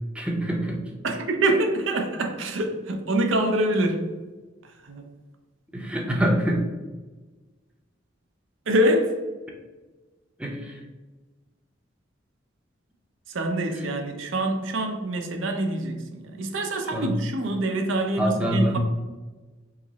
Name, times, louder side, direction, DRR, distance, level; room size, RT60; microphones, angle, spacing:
voice 1, 0.1-0.9 5.7-6.7 10.4-10.8 13.8-13.9 16.9-17.2 18.2-18.8, right 1 dB, 5° right, -1 dB, 0.6 m, -25 dB
voice 2, 1.0-4.1 4.6-5.1 8.7-9.1 13.3-18.8, right 1 dB, 85° right, 4 dB, 0.6 m, -25 dB
4.9 x 2.0 x 4.0 m, 1.2 s
head